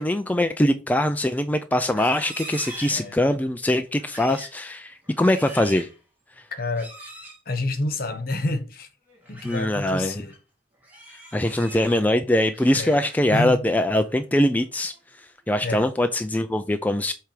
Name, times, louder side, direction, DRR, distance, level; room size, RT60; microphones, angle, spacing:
voice 1, 0.0-5.9 9.4-10.2 11.3-14.9 15.5-17.1, left 1 dB, 10° left, 0.4 m, -22 dB
Livestock farm animals working animals, 1.8-3.5 4.0-4.6 5.0-6.0 6.7-7.4 9.1-9.7 10.1-10.4 10.8-12.0 12.4-13.4 13.8-14.2 14.6-15.0, right 1 dB, 10° right, 2.7 m, -42 dB
voice 2, 6.6-6.9 7.5-8.9 9.3-10.3 11.4-11.6 12.7-13.0 13.3-13.6 15.6-15.9, left 2 dB, 55° left, 1.2 m, -28 dB
7.6 x 3.4 x 4.9 m
head